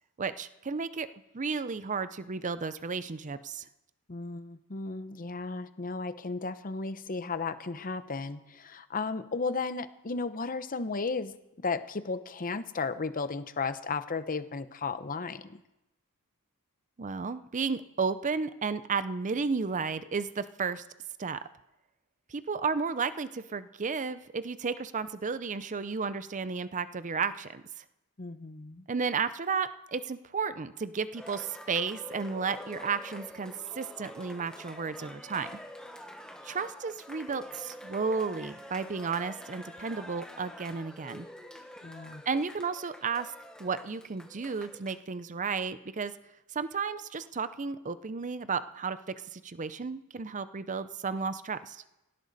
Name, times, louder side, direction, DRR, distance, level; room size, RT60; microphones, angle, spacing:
voice 1, 0.2-1.1 1.3-3.6 17.0-20.8 21.2-21.4 22.3-27.8 28.9-35.5 36.4-41.3 42.3-43.3 43.6-46.1 46.5-49.0 49.3-51.8, right 5 dB, 35° right, 13 dB, 0.6 m, -33 dB
voice 2, 4.1-11.3 11.6-15.6 28.2-28.9 41.8-42.2, left 4 dB, 40° left, 12 dB, 0.8 m, -34 dB
Cheering, 31.1-45.0, equal, 5° left, 1.2 m, -47 dB
18.0 x 17.5 x 4.1 m, 0.95 s
head